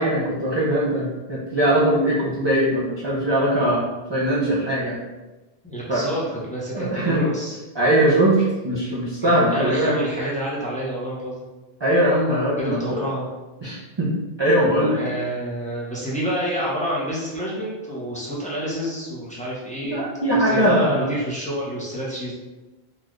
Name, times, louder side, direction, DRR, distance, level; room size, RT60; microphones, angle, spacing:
voice 1, 0.0-3.8 4.1-5.0 5.9-6.0 6.7-7.2 7.8-10.0 11.8-13.0 13.6-14.1 14.4-15.0 19.8-21.1, right 1 dB, 35° right, -6 dB, 0.5 m, -21 dB
voice 2, 5.6-7.6 9.2-11.5 12.6-13.3 14.9-20.0 20.3-22.3, equal, 10° left, -7 dB, 0.8 m, -28 dB
3.9 x 2.4 x 3.1 m, 1.1 s
omnidirectional pair, 1.1 m